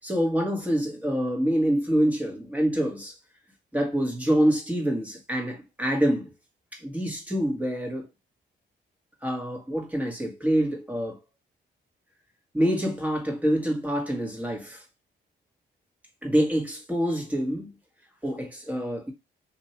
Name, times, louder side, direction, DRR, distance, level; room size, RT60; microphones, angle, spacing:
voice 1, 0.0-3.2 3.7-6.3 6.7-8.1 9.2-11.2 12.5-14.8 16.2-17.7 18.2-19.1, equal, 5° right, 1.5 m, -26 dB
2.8 x 2.6 x 4.3 m
cardioid pair, 90°, 20 cm